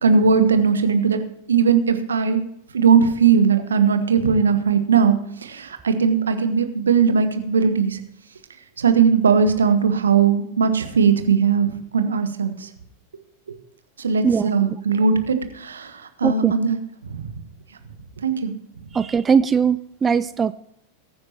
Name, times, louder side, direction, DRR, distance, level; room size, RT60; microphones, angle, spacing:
voice 1, 0.0-1.2 1.5-2.4 2.7-8.0 8.8-12.7 14.0-17.3 18.2-18.5, right 6 dB, 70° right, 9 dB, 1.3 m, -19 dB
voice 2, 14.2-14.8 16.2-16.5 18.9-20.5, right 6 dB, 20° right, 15 dB, 0.4 m, -20 dB
21.5 x 9.5 x 3.0 m, 0.75 s
figure-of-eight pair, 90°, 0 cm